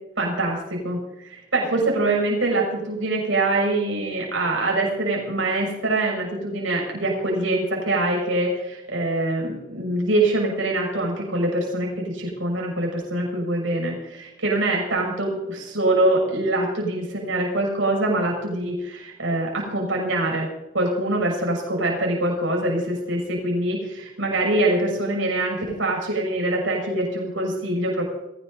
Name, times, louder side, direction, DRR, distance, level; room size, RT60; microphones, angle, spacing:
voice 1, 0.2-20.5 20.7-28.0, right 2 dB, 80° right, -1 dB, 6.7 m, -24 dB
22.0 x 17.5 x 2.8 m, 0.98 s
head